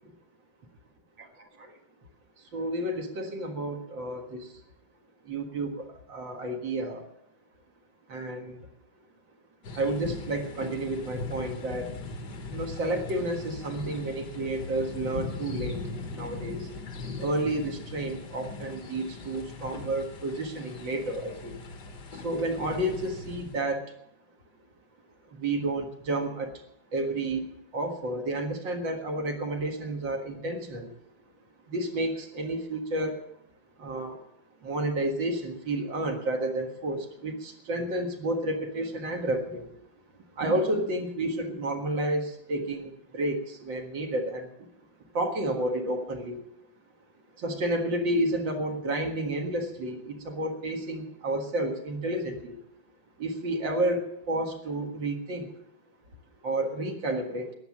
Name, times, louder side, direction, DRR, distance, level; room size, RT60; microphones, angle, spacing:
voice 1, 2.5-4.6 5.3-7.1 8.1-8.7 9.7-12.0 12.5-15.8 16.1-16.7 17.2-21.6 22.1-23.9 25.3-26.6 26.9-30.9 31.7-33.2 33.8-34.2 34.6-39.7 40.4-44.5 45.1-46.4 47.4-52.6 53.2-55.6 56.4-57.5, right 1 dB, 70° right, 4 dB, 2.5 m, -31 dB
sound 1, 9.6-23.6, left 3 dB, 60° left, 2.1 m, -39 dB
14.0 x 10.5 x 7.3 m, 0.75 s
omnidirectional pair, 2.1 m